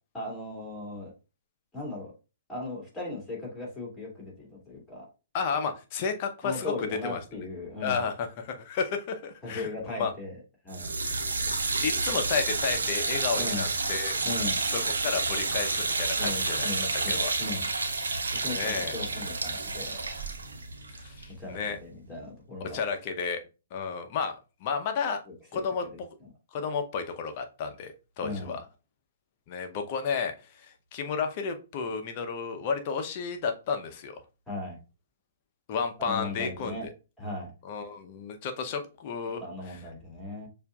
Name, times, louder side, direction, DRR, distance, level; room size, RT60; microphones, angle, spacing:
voice 1, 0.1-1.1 1.7-2.1 2.5-5.1 6.4-8.0 9.4-10.4 10.6-11.0 13.4-13.6 14.2-14.6 16.2-17.7 18.3-20.0 21.4-22.8 25.3-26.0 28.2-28.6 34.5-34.8 36.0-36.9 37.2-37.5 39.4-40.5, left 2 dB, 10° left, -3 dB, 2.3 m, -38 dB
voice 2, 5.3-7.2 7.8-10.1 11.0-11.2 11.6-14.2 14.7-16.7 17.1-17.3 18.6-18.9 20.9-21.8 22.6-23.4 23.7-25.2 25.5-25.8 26.5-28.6 29.5-34.2 35.7-36.8 37.6-39.8, left 5 dB, 40° left, 6 dB, 0.7 m, -32 dB
sound 1, 10.7-21.8, right 3 dB, 80° right, 0.7 m, -30 dB
6.7 x 2.5 x 2.3 m, 0.31 s
figure-of-eight pair, 120°, 0 cm